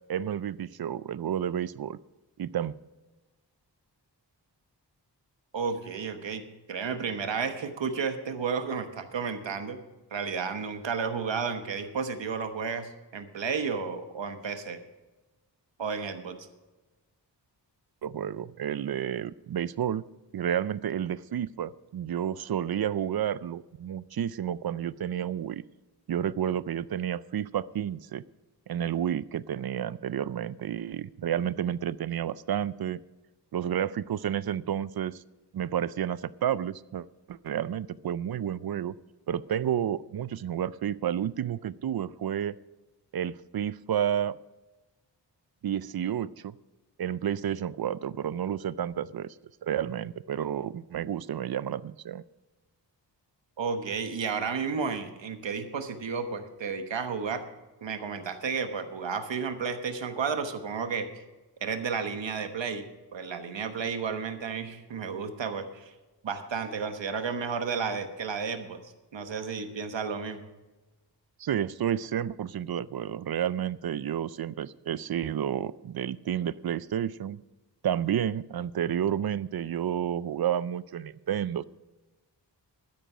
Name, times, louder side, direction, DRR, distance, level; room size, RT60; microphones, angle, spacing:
voice 1, 0.1-2.0 2.4-2.7 18.0-20.0 20.3-25.6 26.1-28.2 28.7-33.0 33.5-35.2 35.5-38.9 39.3-42.6 43.1-44.4 45.6-46.6 47.0-49.3 49.6-52.2 71.4-77.4 77.8-81.6, right 9 dB, 60° right, 19 dB, 0.5 m, -30 dB
voice 2, 5.5-9.8 10.1-14.8 15.8-16.4 53.6-57.4 57.8-61.2 61.6-62.8 63.1-65.9 66.2-70.4, right 5 dB, 90° right, 8 dB, 1.2 m, -32 dB
12.5 x 10.0 x 5.0 m, 1.1 s
wide cardioid pair, 95°, 43 cm